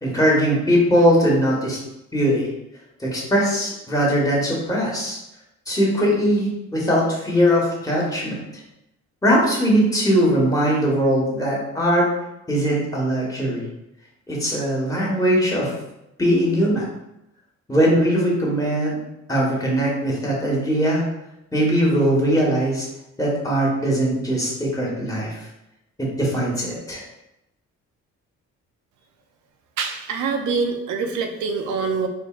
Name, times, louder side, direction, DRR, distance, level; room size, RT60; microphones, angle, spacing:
voice 1, 0.0-1.8 2.1-2.5 3.0-5.2 5.7-8.4 9.2-12.1 12.5-13.6 14.3-15.7 16.2-16.9 17.7-19.0 19.3-21.0 21.5-22.9 23.2-25.3 26.0-27.0, equal, 10° left, -4 dB, 1.4 m, -20 dB
voice 2, 29.8-32.1, right 5 dB, 75° right, 5 dB, 0.6 m, -25 dB
4.4 x 2.7 x 2.4 m, 0.88 s
cardioid pair, 90°, 30 cm